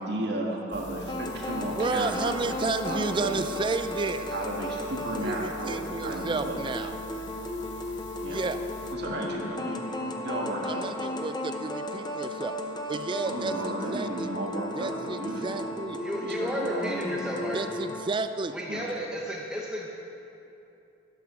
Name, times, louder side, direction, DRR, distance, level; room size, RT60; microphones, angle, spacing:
voice 1, 0.0-2.5 2.8-3.4 4.3-6.6 8.2-8.4 8.9-10.9 13.2-15.7 16.2-17.5 18.7-18.8, right 1 dB, 60° right, -1 dB, 1.7 m, -34 dB
sound 1, 0.7-8.9, left 1 dB, 75° left, 0.9 m, -46 dB
sound 2, 1.1-18.1, left 1 dB, 25° left, 0.8 m, -35 dB
voice 2, 1.7-4.3 5.2-7.0 8.3-8.6 10.6-12.5 12.9-13.5 13.9-14.3 14.7-16.0 17.5-18.5, right 3 dB, 25° right, 10 dB, 0.4 m, -31 dB
voice 3, 16.0-17.6 18.5-19.9, equal, 5° right, -3 dB, 0.8 m, -33 dB
12.0 x 9.9 x 6.2 m, 2.8 s
head